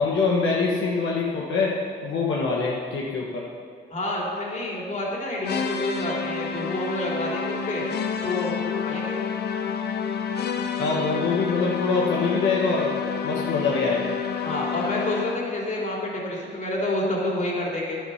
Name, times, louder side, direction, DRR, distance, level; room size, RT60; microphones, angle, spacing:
voice 1, 0.0-1.7 2.0-3.4 10.8-12.9 13.2-14.1, left 4 dB, 75° left, -3 dB, 1.4 m, -24 dB
voice 2, 3.9-7.8 8.2-9.2 14.4-18.0, left 1 dB, 40° left, -3 dB, 3.3 m, -28 dB
sound 1, 5.4-15.6, left 6 dB, 55° left, 0.9 m, -29 dB
10.5 x 9.2 x 5.7 m, 2.3 s
cardioid pair, 90°, 20 cm